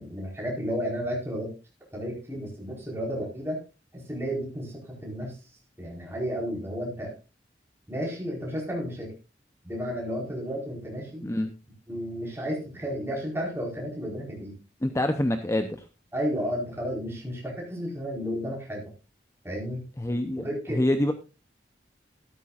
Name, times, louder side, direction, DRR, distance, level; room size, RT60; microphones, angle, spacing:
voice 1, 0.0-1.5 1.9-3.6 3.9-5.4 5.8-7.1 7.9-9.1 9.6-11.3 11.9-14.6 16.1-18.9 19.4-19.9 20.4-20.8, equal, 15° right, -2 dB, 4.5 m, -32 dB
voice 2, 11.2-11.5 14.8-15.8 20.0-21.1, left 1 dB, 15° left, 8 dB, 0.6 m, -26 dB
13.5 x 13.0 x 2.4 m, 0.29 s
head